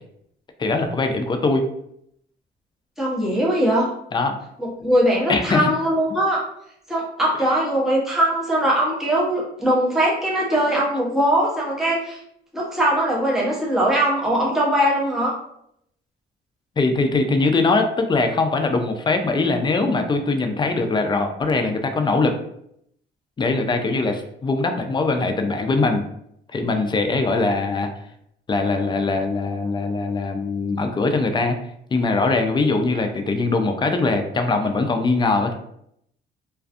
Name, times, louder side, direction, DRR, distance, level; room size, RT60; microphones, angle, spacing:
voice 1, 0.6-1.7 4.1-4.4 5.3-5.7 16.8-22.4 23.4-26.1 26.5-27.9 28.5-31.6 31.9-35.5, left 3 dB, 25° left, 6 dB, 0.4 m, -21 dB
voice 2, 3.0-3.9 4.6-6.4 6.9-12.2 12.5-15.4, right 1 dB, ahead, -6 dB, 0.8 m, -21 dB
2.4 x 2.2 x 2.4 m, 0.73 s
cardioid pair, 90°, 20 cm